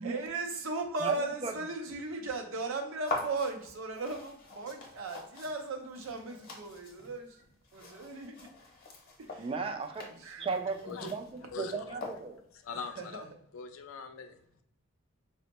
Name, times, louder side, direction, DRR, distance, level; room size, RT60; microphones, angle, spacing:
voice 1, 0.0-7.4 7.7-8.5 9.2-9.5 10.2-10.5 13.0-13.2, right 3 dB, 75° right, 3 dB, 0.5 m, -37 dB
voice 2, 1.0-1.5 9.4-10.1 10.4-12.4, right 4 dB, 25° right, 5 dB, 0.3 m, -36 dB
sound 1, 3.0-12.6, left 3 dB, 45° left, 0.8 m, -44 dB
voice 3, 11.5-11.9 12.5-13.3 13.5-14.6, left 5 dB, 75° left, 7 dB, 0.4 m, -42 dB
4.2 x 2.1 x 2.8 m, 0.70 s
head